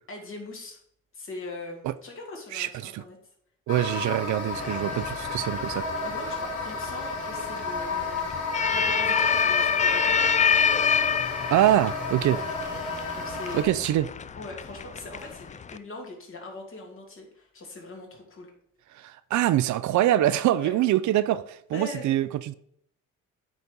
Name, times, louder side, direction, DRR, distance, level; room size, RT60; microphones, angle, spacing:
voice 1, 0.1-0.8 1.1-3.2 4.9-5.1 6.0-8.4 8.7-10.3 12.2-12.4 13.1-13.9 14.4-18.5 20.5-20.7 21.7-22.1, left 2 dB, 45° left, 2.6 m, -41 dB
voice 2, 2.5-3.0 3.7-5.9 11.5-12.4 13.5-14.1 18.9-22.5, right 13 dB, 70° right, 0.5 m, -24 dB
sound 1, 3.7-13.6, left 3 dB, 75° left, 3.1 m, -32 dB
sound 2, 4.5-15.8, left 6 dB, 25° left, 0.4 m, -28 dB
8.6 x 4.1 x 5.2 m
cardioid pair, 90°, 30 cm